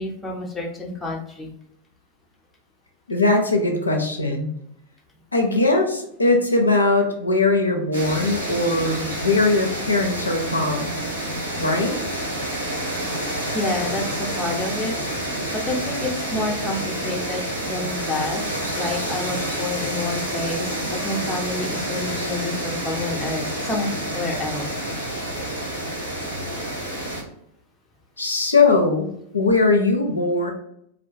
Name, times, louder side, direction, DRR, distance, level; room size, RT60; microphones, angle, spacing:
voice 1, 0.0-1.5 13.5-14.9 15.5-18.4 18.7-24.7, left 2 dB, 10° left, -1 dB, 0.6 m, -29 dB
voice 2, 3.1-4.5 5.3-11.0 11.6-12.0 28.2-30.5, left 3 dB, 80° left, 2 dB, 0.4 m, -20 dB
sound 1, 7.9-27.2, right 1 dB, 80° right, 1.1 m, -28 dB
2.4 x 2.2 x 2.5 m, 0.74 s
figure-of-eight pair, 90°, 0 cm